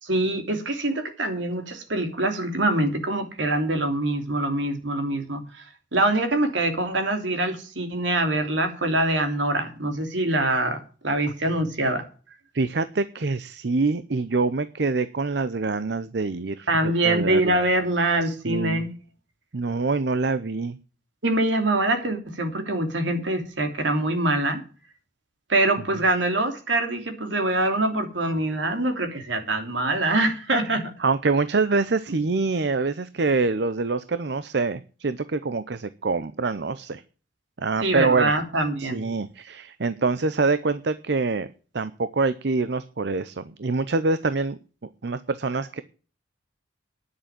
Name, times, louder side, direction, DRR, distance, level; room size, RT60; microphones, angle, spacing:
voice 1, 0.0-12.0 16.7-18.9 21.2-24.6 25.5-30.9 37.8-39.0, right 2 dB, 85° right, 6 dB, 2.9 m, -24 dB
voice 2, 12.5-17.6 18.3-18.8 19.5-20.8 30.7-37.0 37.6-38.3 38.8-41.5 41.7-44.6 45.0-45.8, right 3 dB, 60° right, 14 dB, 0.7 m, -25 dB
10.5 x 6.9 x 8.7 m, 0.38 s
head